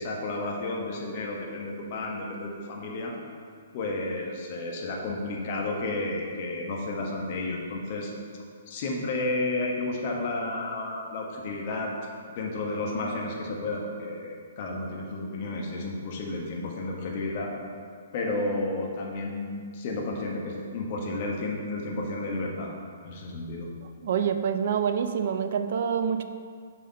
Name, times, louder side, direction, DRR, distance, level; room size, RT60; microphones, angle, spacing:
voice 1, 0.0-3.1 3.7-8.1 8.7-11.9 12.3-17.5 18.1-22.7 23.0-23.7, left 2 dB, 45° left, -1 dB, 1.3 m, -32 dB
voice 2, 24.0-26.2, right 7 dB, 55° right, 9 dB, 0.4 m, -26 dB
7.3 x 3.9 x 5.3 m, 2.1 s
figure-of-eight pair, 120°, 0 cm